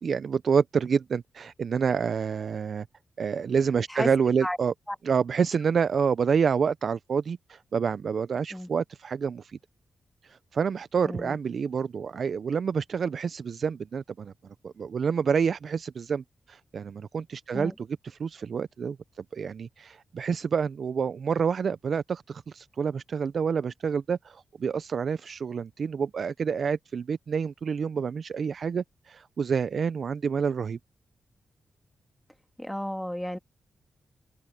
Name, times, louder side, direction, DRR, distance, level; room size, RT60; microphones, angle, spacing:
voice 1, 0.0-2.9 3.2-4.7 5.0-9.6 10.2-14.3 14.6-30.8, right 6 dB, 65° right, 0.4 m, -28 dB
voice 2, 11.0-11.4 17.5-17.7 32.6-33.4, equal, 5° left, 2.3 m, -32 dB
open air
cardioid pair, 75°, 0 cm